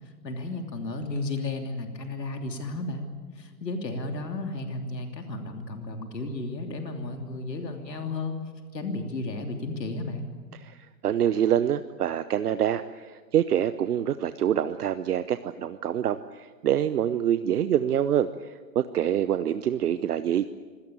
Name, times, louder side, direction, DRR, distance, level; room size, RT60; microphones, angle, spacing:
voice 1, 0.2-3.1 3.4-8.4 8.7-10.3, left 2 dB, 80° left, 4 dB, 3.2 m, -33 dB
voice 2, 10.5-20.5, right 10 dB, 65° right, 12 dB, 1.0 m, -26 dB
25.0 x 18.0 x 8.9 m, 1.5 s
figure-of-eight pair, 120°, 49 cm